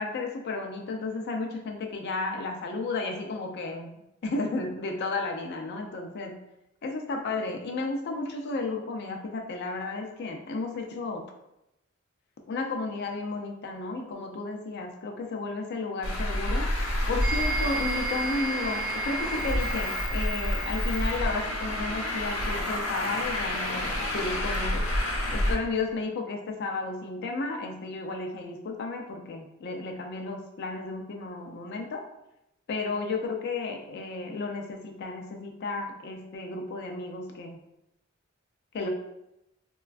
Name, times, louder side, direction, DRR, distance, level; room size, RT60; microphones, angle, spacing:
voice 1, 0.0-6.4 6.8-11.3 12.5-16.7 17.1-24.9 25.3-32.1 32.7-37.6 38.7-38.9, left 3 dB, 55° left, 2 dB, 0.4 m, -33 dB
Traffic noise roadway noise, 16.0-25.5, left 1 dB, 90° left, 0.7 m, -29 dB
sound 1, 17.2-25.9, right 4 dB, 20° right, 0.7 m, -37 dB
4.1 x 2.2 x 2.3 m, 0.86 s
head